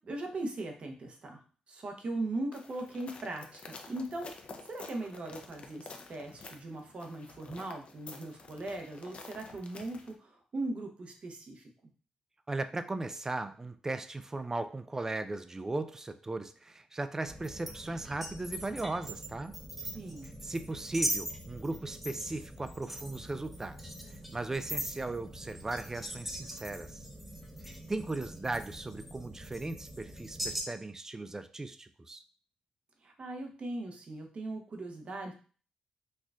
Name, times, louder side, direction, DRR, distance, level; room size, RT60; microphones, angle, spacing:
voice 1, 0.1-1.4 1.7-11.7 19.9-20.3 33.0-35.3, right 2 dB, 50° right, 3 dB, 0.8 m, -39 dB
sound 1, 2.5-10.1, left 4 dB, 50° left, 0.5 m, -50 dB
voice 2, 12.5-19.5 20.4-27.0 27.6-32.2, right 2 dB, 20° right, 10 dB, 0.3 m, -37 dB
sound 2, 17.3-30.6, equal, 5° right, 0.7 m, -41 dB
4.3 x 2.4 x 2.3 m, 0.41 s
cardioid pair, 70°, 3 cm